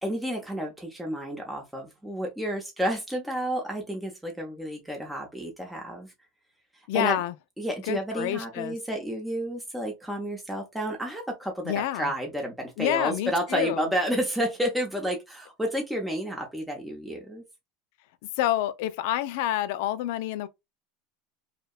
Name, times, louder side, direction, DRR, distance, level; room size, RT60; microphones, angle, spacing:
voice 1, 0.0-6.1 6.9-7.2 7.6-17.4, equal, 5° right, 0.6 m, -31 dB
voice 2, 6.9-7.3 7.9-8.8 11.6-12.1 12.8-13.9 18.4-20.5, left 13 dB, 70° left, 0.3 m, -28 dB
2.7 x 2.1 x 2.3 m
supercardioid pair, 130°, 0 cm